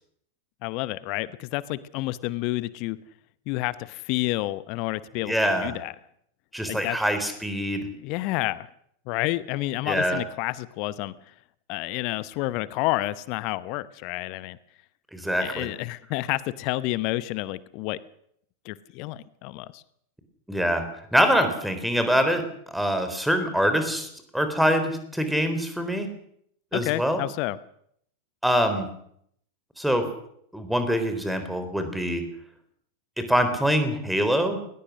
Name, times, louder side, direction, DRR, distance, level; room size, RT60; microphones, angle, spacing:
voice 1, 0.6-3.0 3.5-5.9 6.7-7.0 8.0-8.7 9.1-11.1 11.7-14.6 15.4-18.0 18.6-19.8 26.7-27.6, left 18 dB, 45° left, 18 dB, 0.9 m, -29 dB
voice 2, 5.2-5.7 6.5-7.9 9.9-10.2 15.1-15.7 20.5-20.8 21.1-26.1 26.7-27.2 28.4-28.9 29.8-30.1 30.5-32.2 33.2-34.6, equal, ahead, 8 dB, 3.9 m, -24 dB
20.5 x 20.0 x 6.5 m, 0.70 s
figure-of-eight pair, 90°, 0 cm